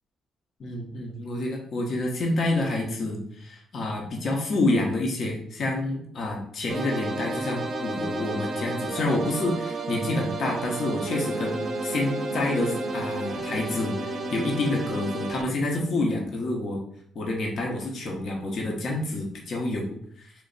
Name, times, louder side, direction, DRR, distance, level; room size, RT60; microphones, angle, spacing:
voice 1, 0.6-16.8 17.1-20.3, left 2 dB, 55° left, 0 dB, 1.0 m, -28 dB
sound 1, 6.7-15.4, right 2 dB, 50° right, 0.5 m, -31 dB
3.3 x 2.5 x 3.9 m, 0.64 s
cardioid pair, 90°, 0 cm